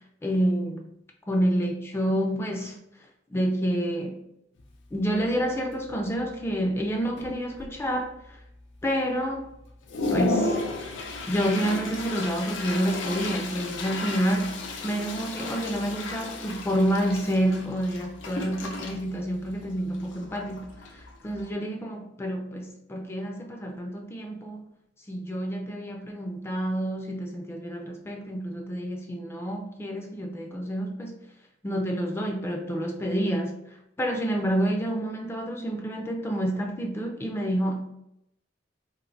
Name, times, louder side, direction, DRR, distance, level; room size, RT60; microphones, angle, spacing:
voice 1, 0.2-0.9 1.3-2.8 3.3-4.2 4.9-8.4 8.8-9.5 10.1-10.6 11.3-24.7 25.1-31.2 31.6-33.6 34.0-37.9, equal, 15° left, 0.3 m, -28 dB
Toilet flush, 4.6-4.7 5.2-5.4 5.7-6.3 6.8-6.9 7.2-7.9 8.4-8.5 9.0-9.1 9.5-21.5, left 2 dB, 90° left, 0.5 m, -34 dB
3.1 x 2.5 x 2.6 m
head